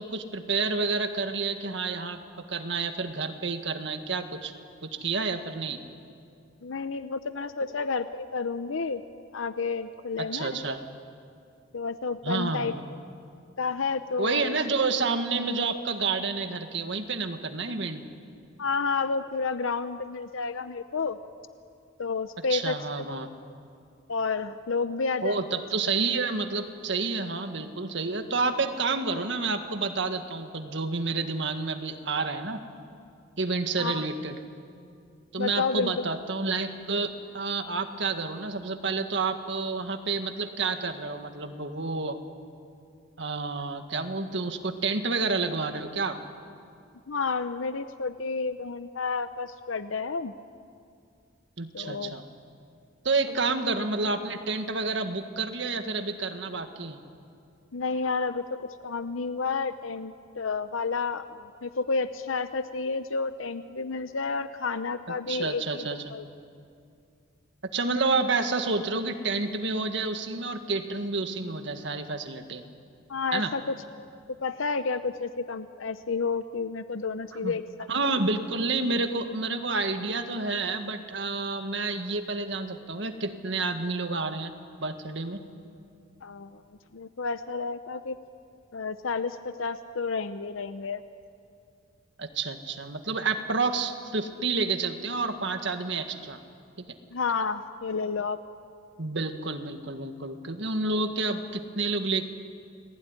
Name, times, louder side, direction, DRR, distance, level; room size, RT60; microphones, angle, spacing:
voice 1, 0.0-2.2 2.5-4.5 4.8-5.8 10.2-10.8 12.2-12.8 14.2-18.0 22.5-23.3 25.2-32.6 33.4-34.4 35.3-42.2 43.2-46.2 51.6-52.2 53.0-57.0 65.3-66.1 67.7-72.6 73.3-73.5 77.4-77.5 77.9-84.5 84.8-85.4 92.2-96.4 96.8-96.9 99.0-102.3, right 3 dB, 60° right, 6 dB, 1.8 m, -29 dB
voice 2, 6.6-9.0 9.3-10.6 11.7-12.7 13.6-14.6 18.6-21.2 22.0-23.5 24.1-25.6 33.8-34.0 35.4-36.0 47.1-50.3 51.7-52.2 53.4-53.6 57.7-66.3 73.1-73.8 74.3-77.9 86.2-86.6 86.9-88.2 88.7-91.0 97.1-98.4, left 4 dB, 75° left, 11 dB, 0.8 m, -31 dB
29.5 x 20.0 x 9.8 m, 2.4 s
head